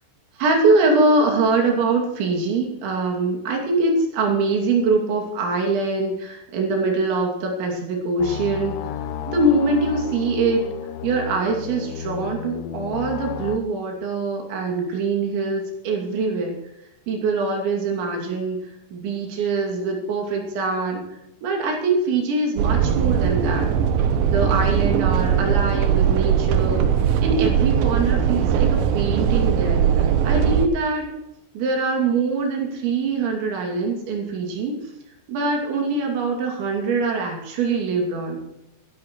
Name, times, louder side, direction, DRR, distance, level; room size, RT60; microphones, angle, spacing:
voice 1, 0.4-8.8 9.3-10.7 11.0-16.6 17.1-18.6 18.9-21.0 21.4-23.7 24.3-26.8 27.2-28.7 28.9-29.8 30.2-31.1 31.5-34.7 35.3-38.4, right 3 dB, 70° right, 1 dB, 4.9 m, -23 dB
sound 1, 8.2-13.6, left 8 dB, 90° left, 3.3 m, -32 dB
sound 2, 22.6-30.7, right 8 dB, 90° right, 2.1 m, -20 dB
20.5 x 11.5 x 3.2 m, 0.91 s
omnidirectional pair, 5.5 m